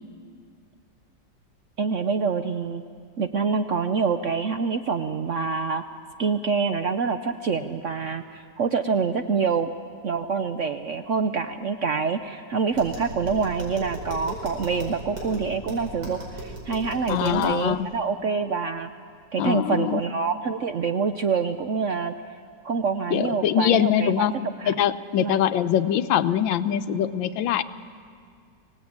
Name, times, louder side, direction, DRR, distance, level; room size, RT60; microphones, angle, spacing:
voice 1, 1.8-2.8 3.2-5.8 6.2-9.7 10.0-18.9 19.3-22.1 22.6-24.7 25.2-25.4, right 5 dB, 60° right, 8 dB, 0.8 m, -26 dB
Tap, 12.7-17.6, right 1 dB, 90° right, 5.8 m, -37 dB
voice 2, 17.1-17.9 19.4-20.0 23.1-24.3 24.7-27.6, left 10 dB, 85° left, 12 dB, 1.5 m, -23 dB
24.5 x 17.5 x 8.8 m, 2.1 s
omnidirectional pair, 2.0 m